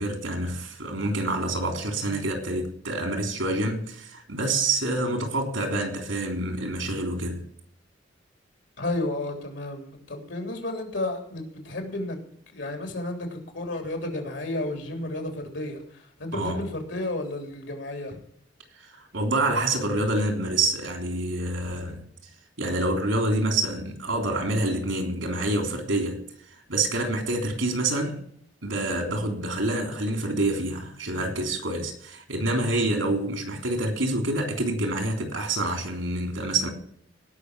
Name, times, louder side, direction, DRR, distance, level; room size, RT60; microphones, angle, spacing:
voice 1, 0.0-7.5 16.3-16.6 18.9-22.1 22.6-26.2 26.7-28.2 28.6-36.7, right 2 dB, 85° right, 3.3 m, -27 dB
voice 2, 8.8-12.2 12.5-18.2, left 2 dB, 70° left, 3.3 m, -32 dB
18.0 x 6.2 x 6.2 m
head